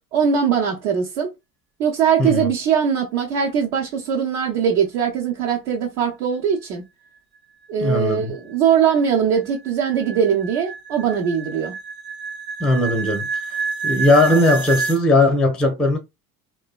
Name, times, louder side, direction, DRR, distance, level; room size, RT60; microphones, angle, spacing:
voice 1, 0.1-1.3 1.8-6.8 7.7-11.7, right 7 dB, 55° right, 1.0 m, -21 dB
voice 2, 2.2-2.5 7.8-8.3 12.6-13.3 13.8-16.0, left 2 dB, ahead, 0.5 m, -18 dB
sound 1, 7.8-15.0, right 4 dB, 80° right, 1.0 m, -29 dB
3.7 x 2.3 x 2.3 m
figure-of-eight pair, 65°, 48 cm